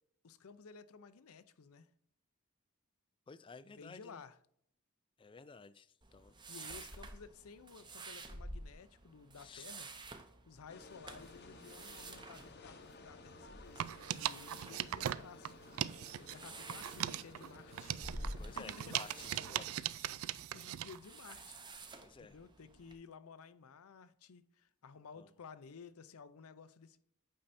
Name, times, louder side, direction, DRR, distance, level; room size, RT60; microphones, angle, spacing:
voice 1, 0.2-1.9 3.7-4.4 6.5-15.6 16.1-19.0 20.0-21.6 22.2-27.0, left 5 dB, 80° left, 0.6 m, -55 dB
voice 2, 3.3-4.2 5.2-6.3 6.7-6.8 9.4-9.7 14.6-14.9 18.4-19.9 20.2-20.3 22.0-22.4 25.2-25.3, left 4 dB, 25° left, 0.3 m, -54 dB
sound 1, 6.0-23.0, right 2 dB, 20° right, 0.7 m, -51 dB
sound 2, 10.7-19.6, left 2 dB, 50° left, 0.9 m, -56 dB
sound 3, 13.7-16.4 16.7-21.0, right 11 dB, 70° right, 0.3 m, -40 dB
8.7 x 5.6 x 2.6 m
head